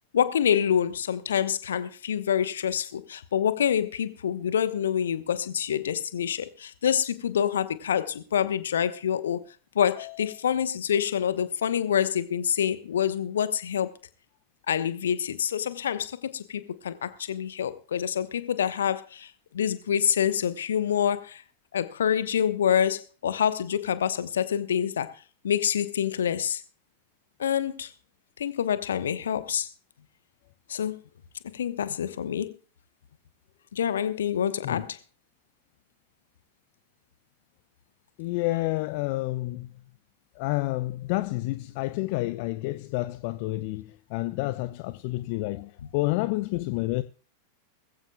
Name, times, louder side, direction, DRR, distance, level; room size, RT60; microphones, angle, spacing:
voice 1, 0.1-9.5 9.7-14.0 14.7-21.4 21.7-25.1 25.4-26.6 27.4-27.9 28.4-29.7 30.7-31.0 31.5-32.5 33.7-35.0 45.8-45.9, left 9 dB, 65° left, 1.1 m, -27 dB
voice 2, 38.2-39.7 40.4-47.0, left 20 dB, 45° left, 0.6 m, -29 dB
21.0 x 15.0 x 2.3 m
figure-of-eight pair, 90°, 0 cm